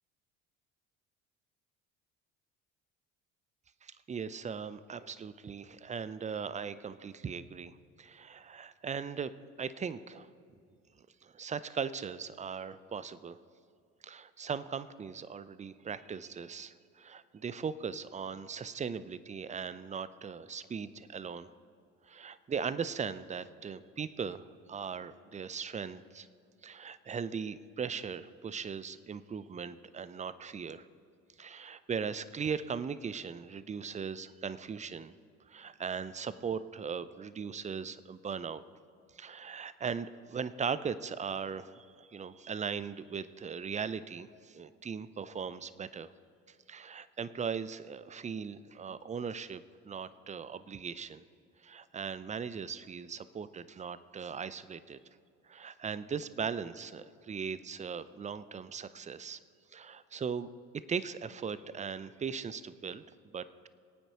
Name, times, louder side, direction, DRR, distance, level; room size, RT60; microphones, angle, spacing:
voice 1, 3.8-9.3 9.6-10.3 11.2-13.4 14.0-21.5 22.1-26.3 26.6-30.9 31.4-35.1 35.5-38.6 39.1-46.1 46.7-51.2 51.6-55.0 55.5-59.4 59.7-60.5 60.9-63.7, right 6 dB, 20° right, 15 dB, 0.5 m, -39 dB
23.0 x 9.0 x 2.9 m, 2.3 s
hypercardioid pair, 60°, 38 cm